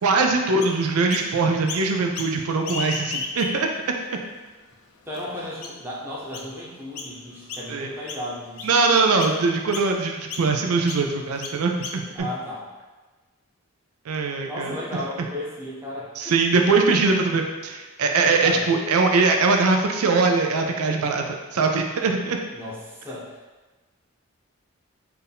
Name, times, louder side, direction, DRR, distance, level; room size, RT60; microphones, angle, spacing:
voice 1, 0.0-3.7 7.7-7.9 8.6-12.3 14.1-14.8 16.2-22.4, right 4 dB, 85° right, 3 dB, 0.4 m, -21 dB
Chirp tweet, 0.6-1.3 1.7-2.3 2.6-3.8 4.4-4.5 5.1-5.2 5.6-5.9 6.3-6.5 6.9-7.1 7.5-8.7 9.2-9.4 9.7-9.9 10.3-10.5 10.9-11.0 11.4-12.2, left 4 dB, 75° left, 0.5 m, -34 dB
voice 2, 5.1-8.7 12.1-12.7 14.5-16.3 18.1-18.8 22.5-23.4, left 1 dB, 10° right, -6 dB, 0.8 m, -35 dB
4.5 x 2.6 x 3.4 m, 1.2 s
head